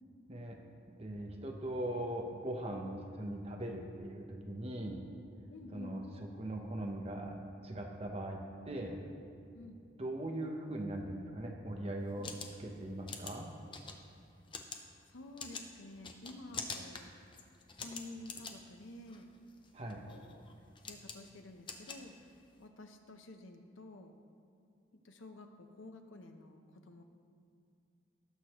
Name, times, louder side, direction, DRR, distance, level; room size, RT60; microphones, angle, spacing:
voice 1, 1.0-5.0 5.7-6.0 6.4-7.4 7.6-9.0 10.0-12.3 12.6-13.5 19.7-20.0, right 1 dB, 30° right, 1 dB, 0.8 m, -40 dB
voice 2, 5.5-6.0 9.5-9.8 15.1-17.1 17.8-19.3 20.1-20.4 20.8-22.2 22.6-24.2 25.0-27.0, left 2 dB, 90° left, 5 dB, 0.8 m, -51 dB
sound 1, 12.0-22.7, left 4 dB, 25° left, 0.6 m, -47 dB
18.0 x 6.4 x 3.0 m, 2.5 s
head